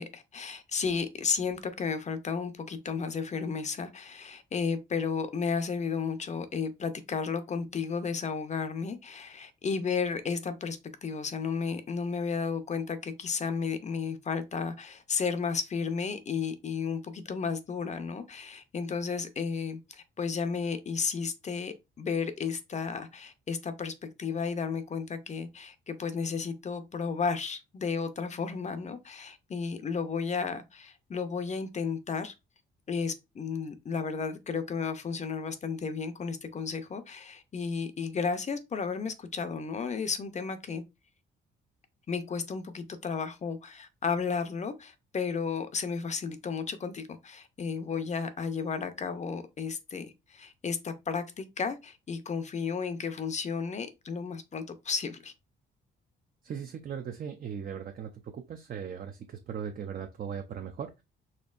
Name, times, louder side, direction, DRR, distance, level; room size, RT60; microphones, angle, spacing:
voice 1, 0.0-32.3 32.9-40.8 42.1-55.3, left 5 dB, 35° left, 0.6 m, -33 dB
voice 2, 56.4-61.0, right 7 dB, 45° right, 0.5 m, -38 dB
4.3 x 2.7 x 2.4 m
cardioid pair, 90°, 20 cm